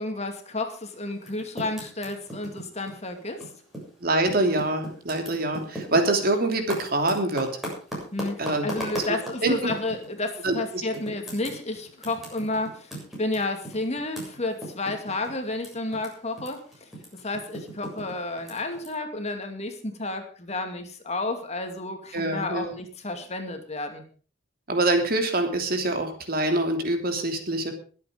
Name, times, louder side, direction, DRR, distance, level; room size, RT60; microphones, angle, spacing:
voice 1, 0.0-3.4 8.1-16.6 17.2-24.0, left 2 dB, 35° left, 6 dB, 2.4 m, -31 dB
Typing, 1.1-3.9 4.2-10.1 10.5-10.6 10.9-16.1 16.3-18.9, equal, ahead, 7.2 m, -37 dB
voice 2, 4.0-7.5 8.4-8.7 9.4-9.5 10.4-10.8 22.1-22.7 24.7-27.7, right 2 dB, 50° right, 5 dB, 3.1 m, -25 dB
22.0 x 8.4 x 5.1 m, 0.40 s
head